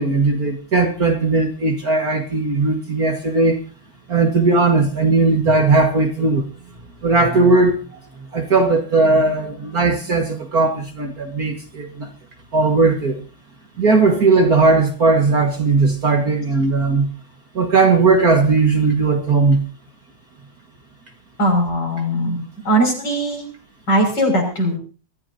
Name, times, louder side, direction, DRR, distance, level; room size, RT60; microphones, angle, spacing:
voice 1, 0.0-3.6 4.1-6.4 7.0-7.8 8.3-12.1 12.5-13.2 13.8-17.1 17.6-19.6, right 3 dB, 45° right, 3 dB, 2.3 m, -17 dB
voice 2, 21.4-22.4 22.7-23.4 23.9-24.8, right 1 dB, 50° left, 1 dB, 6.9 m, -19 dB
24.0 x 14.0 x 2.8 m, 0.36 s
omnidirectional pair, 2.3 m